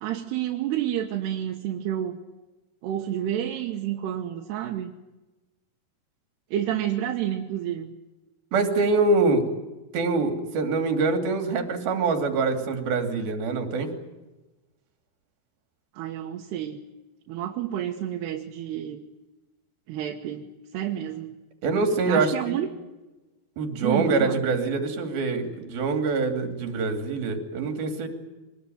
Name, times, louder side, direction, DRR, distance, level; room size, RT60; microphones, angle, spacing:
voice 1, 0.0-2.2 2.8-4.9 6.5-7.9 15.9-16.8 17.3-19.0 19.9-20.5 20.7-21.3 22.1-22.7 23.8-24.4, right 11 dB, 80° right, 2 dB, 3.3 m, -29 dB
voice 2, 8.5-9.5 9.9-13.9 21.6-22.6 23.6-28.1, right 3 dB, 65° right, 5 dB, 4.4 m, -24 dB
24.5 x 19.5 x 9.3 m, 1.1 s
omnidirectional pair, 4.7 m